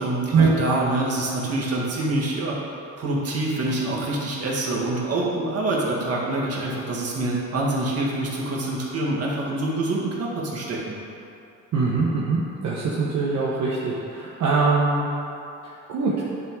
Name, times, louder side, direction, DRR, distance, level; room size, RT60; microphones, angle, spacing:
voice 1, 0.0-2.6 3.0-11.0, right 2 dB, 55° right, -4 dB, 1.8 m, -26 dB
voice 2, 11.7-15.1 15.9-16.2, right 4 dB, 70° right, -6 dB, 1.1 m, -22 dB
10.5 x 3.7 x 4.7 m, 2.7 s
cardioid pair, 90°, 30 cm